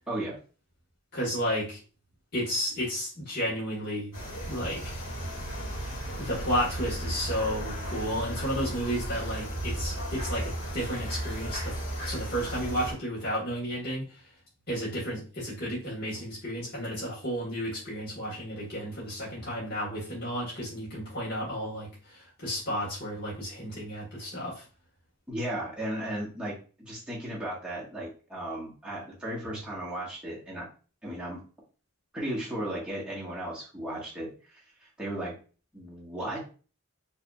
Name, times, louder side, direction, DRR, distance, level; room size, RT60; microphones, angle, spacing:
voice 1, 0.1-0.4 25.3-30.7 31.0-31.4 32.1-35.3 35.7-36.4, right 1 dB, 5° right, -7 dB, 1.3 m, -35 dB
voice 2, 1.1-1.8 2.3-4.1 4.4-4.8 6.2-14.2 14.7-24.6, equal, 45° left, -7 dB, 1.3 m, -32 dB
sound 1, 4.1-12.9, right 1 dB, 65° left, 1.6 m, -35 dB
4.7 x 2.8 x 2.3 m, 0.37 s
head